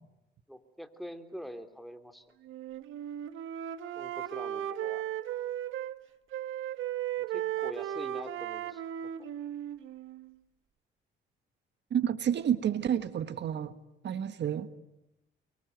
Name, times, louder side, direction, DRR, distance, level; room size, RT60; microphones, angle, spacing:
voice 1, 0.5-2.3 4.0-5.0 7.3-8.8, equal, ahead, 7 dB, 3.3 m, -44 dB
Wind instrument woodwind instrument, 2.4-6.0 6.3-10.3, right 11 dB, 80° right, 1.4 m, -36 dB
voice 2, 11.9-13.7 14.0-14.7, right 9 dB, 60° right, 11 dB, 1.4 m, -29 dB
29.0 x 24.0 x 8.0 m, 0.90 s
cardioid pair, 90°, 20 cm